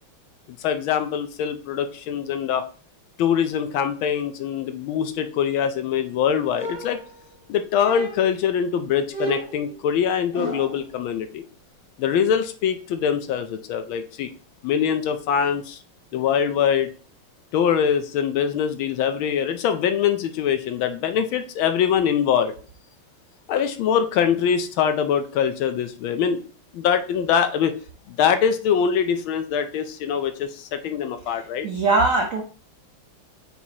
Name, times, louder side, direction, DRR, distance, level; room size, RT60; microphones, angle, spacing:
voice 1, 0.6-2.6 3.2-7.0 7.5-11.4 12.0-14.3 14.6-15.8 16.1-16.9 17.5-22.5 23.5-26.4 26.7-27.7 28.1-31.7, left 8 dB, 75° left, 9 dB, 1.3 m, -23 dB
sound 1, 6.5-7.4 7.8-8.4 9.1-10.9, right 1 dB, 45° left, 2.2 m, -33 dB
voice 2, 31.6-32.4, right 3 dB, 65° right, 1 dB, 0.8 m, -20 dB
7.1 x 4.7 x 2.8 m, 0.40 s
omnidirectional pair, 2.4 m